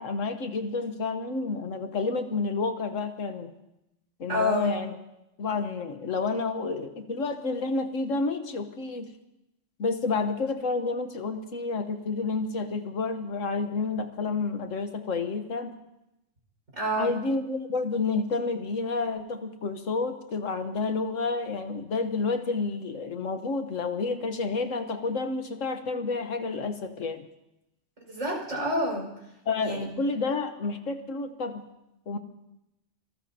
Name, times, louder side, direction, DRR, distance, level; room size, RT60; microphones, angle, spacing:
voice 1, 0.0-3.5 4.2-4.9 5.4-9.1 9.8-15.8 17.0-27.3 29.5-31.6 32.1-32.2, left 4 dB, 85° left, 7 dB, 1.6 m, -30 dB
voice 2, 4.3-4.8 16.8-17.1 28.1-29.3 29.6-29.9, equal, 90° right, -1 dB, 6.0 m, -28 dB
26.0 x 19.0 x 2.9 m, 0.89 s
omnidirectional pair, 1.3 m